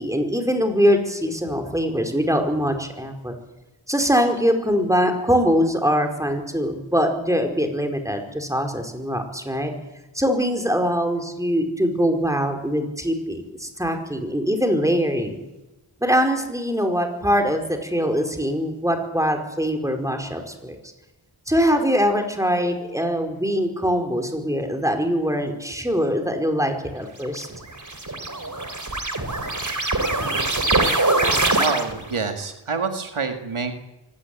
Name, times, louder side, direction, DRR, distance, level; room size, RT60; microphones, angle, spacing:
voice 1, 0.0-3.3 3.9-9.7 10.1-15.4 16.0-20.8 21.5-27.5, equal, 5° right, 4 dB, 4.8 m, -22 dB
sound 1, 27.2-32.2, right 2 dB, 35° right, 3.1 m, -23 dB
voice 2, 31.6-33.7, right 5 dB, 85° right, 5 dB, 2.1 m, -26 dB
24.0 x 18.0 x 8.6 m, 0.99 s
wide cardioid pair, 45°, 48 cm